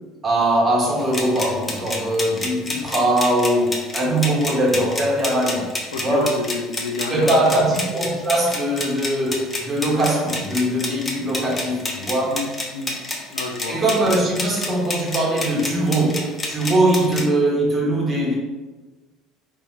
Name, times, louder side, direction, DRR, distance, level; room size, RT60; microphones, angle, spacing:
voice 1, 0.2-5.7 6.0-6.4 7.1-12.4 13.7-18.3, right 1 dB, 25° right, -3 dB, 1.3 m, -21 dB
sound 1, 1.0-17.3, left 2 dB, 20° left, 0.6 m, -30 dB
voice 2, 5.9-7.8 12.3-12.9 13.3-13.8, left 3 dB, 75° left, 2 dB, 0.4 m, -29 dB
2.8 x 2.7 x 3.6 m, 1.2 s
figure-of-eight pair, 65°, 0 cm